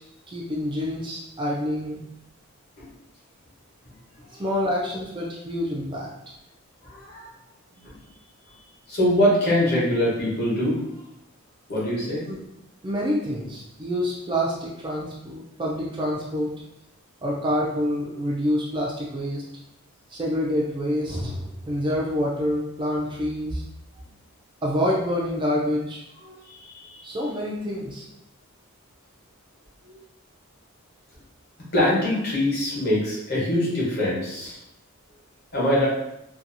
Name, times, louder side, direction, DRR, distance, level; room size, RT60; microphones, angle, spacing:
voice 1, 0.3-2.0 4.4-6.1 12.3-12.4 12.8-16.5 17.2-19.4 20.1-23.6 24.6-26.0 27.0-28.1, equal, 20° right, -4 dB, 0.3 m, -27 dB
voice 2, 6.8-7.3 7.8-8.0 8.5-10.8 11.7-12.2 26.2-27.2 29.9-30.0 31.7-34.6 35.5-35.9, left 1 dB, 45° left, -6 dB, 0.9 m, -24 dB
2.7 x 2.3 x 2.5 m, 0.84 s
head